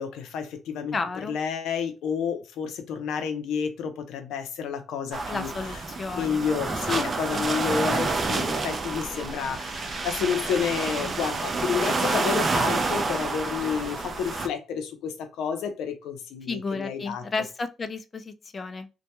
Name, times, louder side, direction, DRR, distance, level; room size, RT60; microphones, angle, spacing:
voice 1, 0.0-5.5 6.2-17.2, left 7 dB, 85° left, 0.5 m, -30 dB
voice 2, 0.9-1.3 5.3-6.4 6.7-7.0 7.3-7.4 16.5-18.9, left 4 dB, 35° left, 0.4 m, -33 dB
sound 1, 5.1-14.5, right 3 dB, 40° right, 0.4 m, -28 dB
2.2 x 2.1 x 2.8 m
cardioid pair, 90°, 0 cm